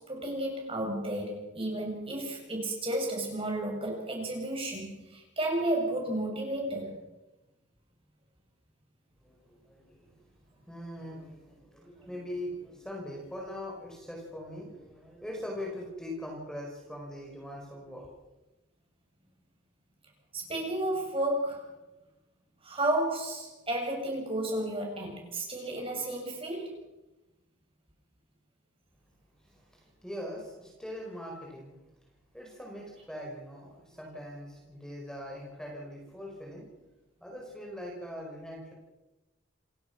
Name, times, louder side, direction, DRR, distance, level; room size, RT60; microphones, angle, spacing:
voice 1, 0.0-7.0 20.3-21.7 22.6-26.8, right 1 dB, 30° right, 0 dB, 7.5 m, -32 dB
voice 2, 9.2-10.2 10.6-18.1 29.4-31.8 32.3-36.9 37.2-38.7, left 1 dB, 5° left, -1 dB, 5.2 m, -42 dB
28.5 x 18.5 x 6.1 m, 1.0 s
head